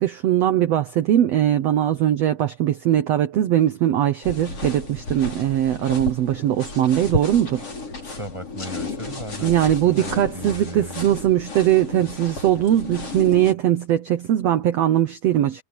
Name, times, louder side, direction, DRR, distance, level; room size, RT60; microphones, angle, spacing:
voice 1, 0.0-7.6 9.4-15.6, right 11 dB, 90° right, 1.4 m, -20 dB
sound 1, 4.2-13.5, left 2 dB, 40° left, 7.2 m, -33 dB
voice 2, 8.0-9.6 9.8-11.1, equal, 5° right, 7.3 m, -36 dB
omnidirectional pair, 4.2 m